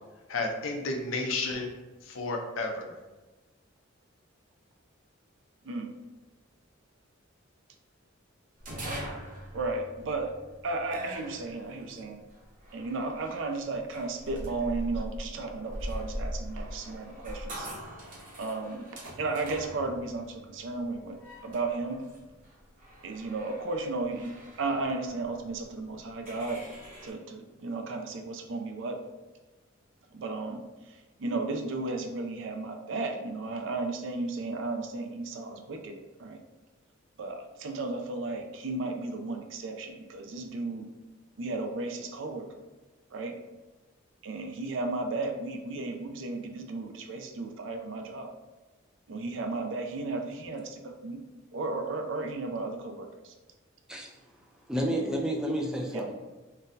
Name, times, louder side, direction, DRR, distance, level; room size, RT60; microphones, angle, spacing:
voice 1, 0.3-1.7 2.0-2.9, left 2 dB, 80° left, 2 dB, 0.5 m, -32 dB
sound 1, 8.6-27.1, equal, 40° right, 0.8 m, -42 dB
voice 2, 9.5-10.3 10.6-12.2 12.7-17.7 18.4-21.2 21.4-22.0 23.0-24.3 24.6-26.6 27.0-29.0 30.1-36.4 37.2-40.9 41.4-42.6 43.1-43.4 44.2-48.3 49.1-51.2 51.5-53.3 54.8-55.2 55.9-56.0, right 3 dB, 65° right, 4 dB, 0.4 m, -34 dB
voice 3, 54.7-56.1, equal, 5° right, 0 dB, 0.3 m, -30 dB
3.9 x 2.1 x 2.6 m, 1.2 s
head